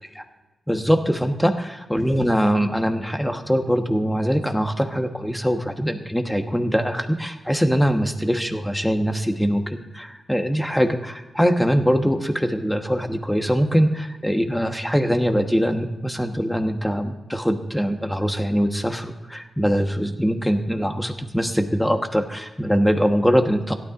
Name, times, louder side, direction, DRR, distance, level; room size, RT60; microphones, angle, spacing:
voice 1, 0.7-23.8, equal, 5° left, 5 dB, 1.2 m, -22 dB
16.5 x 12.0 x 2.5 m, 1.1 s
cardioid pair, 80°, 0 cm